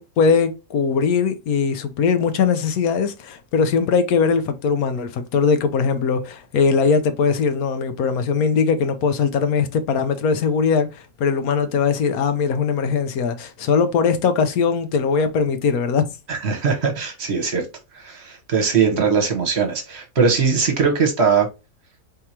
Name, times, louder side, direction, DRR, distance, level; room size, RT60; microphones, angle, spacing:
voice 1, 0.0-16.1, left 5 dB, 80° left, 1.2 m, -20 dB
voice 2, 16.3-17.7 17.9-21.5, right 5 dB, 50° right, 1.2 m, -20 dB
4.5 x 3.6 x 2.8 m
omnidirectional pair, 1.5 m